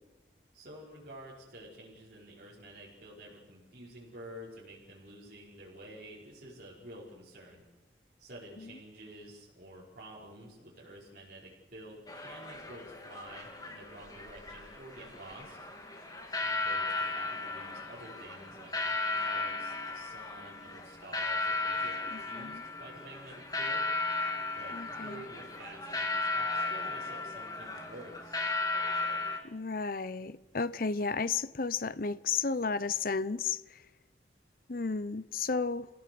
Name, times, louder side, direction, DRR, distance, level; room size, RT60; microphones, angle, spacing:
voice 1, 0.5-7.6 8.2-15.6 16.4-23.8 24.5-28.4, right 1 dB, 50° right, 5.3 m, -50 dB
sound 1, 12.1-29.4, left 3 dB, 20° left, 2.8 m, -35 dB
voice 2, 22.1-22.6 24.7-25.2 29.4-33.8 34.7-35.9, left 5 dB, 50° left, 0.7 m, -33 dB
28.5 x 16.5 x 7.9 m
head